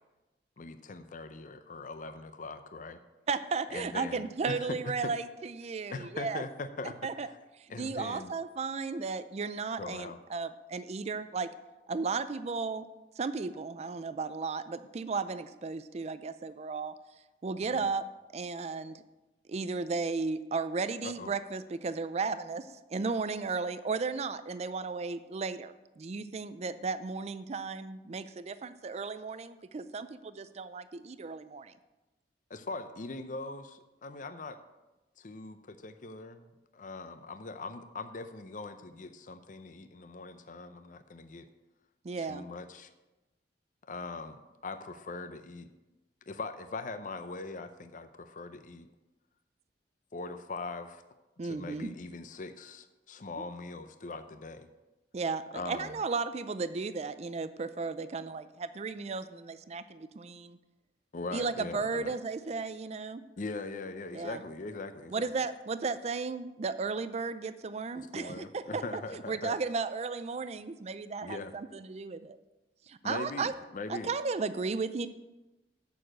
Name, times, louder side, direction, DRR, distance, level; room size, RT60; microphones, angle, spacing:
voice 1, 0.6-3.0 3.7-5.1 5.9-7.4 7.7-8.3 9.8-10.2 17.7-17.8 21.0-21.3 32.5-34.6 35.2-36.4 36.7-41.5 42.2-42.9 43.9-45.7 46.3-48.9 50.1-51.0 51.4-54.7 55.5-56.0 61.1-62.1 63.4-65.3 67.9-69.6 71.2-71.5 73.0-74.1, left 3 dB, 50° left, 9 dB, 0.6 m, -41 dB
voice 2, 3.3-6.4 7.0-7.3 7.6-11.5 11.9-12.9 13.2-16.9 17.4-18.0 18.3-19.0 19.5-31.7 42.0-42.4 51.4-51.9 55.1-60.6 61.3-63.2 64.1-64.4 65.1-68.8 69.1-72.4 72.9-73.5 73.9-75.1, right 4 dB, 40° right, 13 dB, 0.4 m, -35 dB
7.0 x 6.5 x 7.5 m, 1.1 s
head